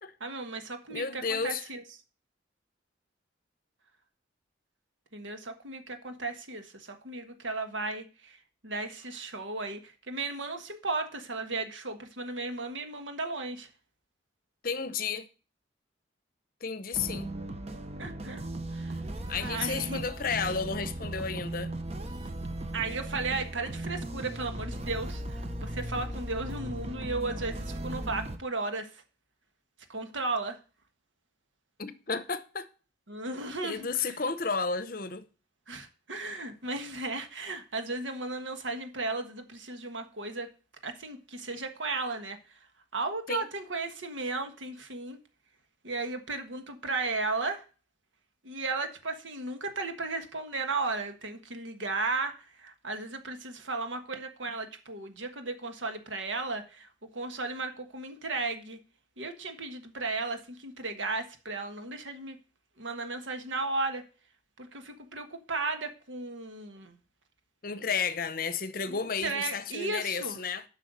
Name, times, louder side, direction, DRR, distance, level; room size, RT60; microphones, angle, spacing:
voice 1, 0.2-1.8 5.1-13.7 18.0-18.4 18.7-19.0 19.4-20.0 22.7-29.0 29.9-30.6 33.1-34.2 35.7-40.5 40.8-42.6 42.9-45.2 45.8-47.6 48.4-58.8 59.2-62.4 62.8-64.0 64.6-67.0 68.9-70.4, right 3 dB, 90° right, 1.5 m, -35 dB
voice 2, 0.9-1.6 14.6-15.3 16.6-17.3 19.3-21.7 31.8-32.7 33.6-35.2 43.3-43.5 67.6-70.6, left 5 dB, 50° left, 0.7 m, -32 dB
sound 1, 16.9-28.4, right 1 dB, 35° right, 0.9 m, -37 dB
8.1 x 5.6 x 6.6 m
head